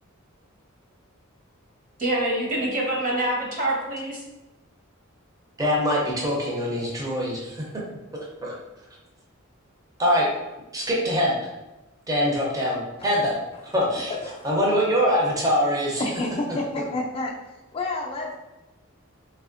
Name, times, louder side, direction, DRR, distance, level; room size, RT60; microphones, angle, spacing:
voice 1, 2.0-4.2, right 1 dB, 40° right, -3 dB, 1.0 m, -25 dB
voice 2, 5.6-7.8 8.4-8.5 10.0-10.3 10.7-11.3 12.1-13.4 13.7-14.1 14.4-16.0, equal, 15° right, -3 dB, 0.6 m, -23 dB
voice 3, 13.9-14.5 16.0-17.3 17.7-18.3, left 2 dB, 25° left, -1 dB, 0.4 m, -29 dB
3.3 x 3.3 x 2.5 m, 1.1 s
head